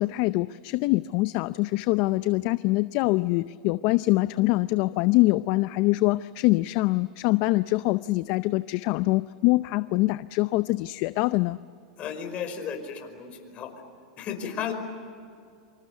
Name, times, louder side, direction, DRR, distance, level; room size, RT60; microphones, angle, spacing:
voice 1, 0.0-11.6, left 20 dB, 50° left, 15 dB, 0.6 m, -24 dB
voice 2, 12.0-13.8 14.2-14.7, left 7 dB, 35° left, 6 dB, 5.1 m, -34 dB
26.5 x 26.0 x 8.2 m, 2.4 s
hypercardioid pair, 125°, 4 cm